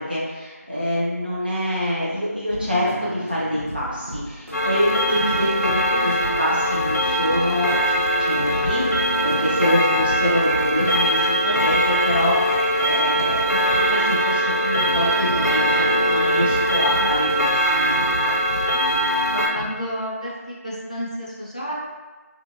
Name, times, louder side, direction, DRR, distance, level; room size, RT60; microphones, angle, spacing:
voice 1, 0.0-18.4, equal, 35° right, -7 dB, 0.5 m, -26 dB
sound 1, 2.5-19.7, right 1 dB, 55° right, 1.0 m, -36 dB
Clock, 4.5-19.5, equal, 90° left, 0.6 m, -21 dB
sound 2, 9.4-17.4, equal, 90° right, 1.2 m, -38 dB
voice 2, 16.8-17.1 19.3-21.7, equal, 25° left, -5 dB, 0.4 m, -31 dB
2.7 x 2.1 x 2.5 m, 1.3 s
figure-of-eight pair, 180°, 9 cm